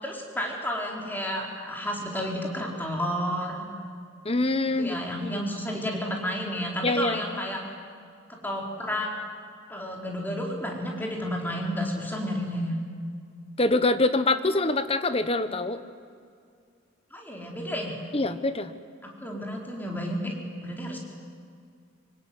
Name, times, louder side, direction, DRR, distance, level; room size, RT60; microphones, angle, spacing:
voice 1, 0.0-3.7 4.8-7.6 8.4-9.1 9.7-12.8 17.1-18.0 19.0-20.3 20.6-21.0, equal, 10° left, -1 dB, 4.1 m, -31 dB
voice 2, 4.2-5.0 5.2-5.4 6.8-7.2 13.6-15.8 18.1-18.7, left 2 dB, 30° left, 11 dB, 1.2 m, -25 dB
25.5 x 24.0 x 9.6 m, 2.2 s
head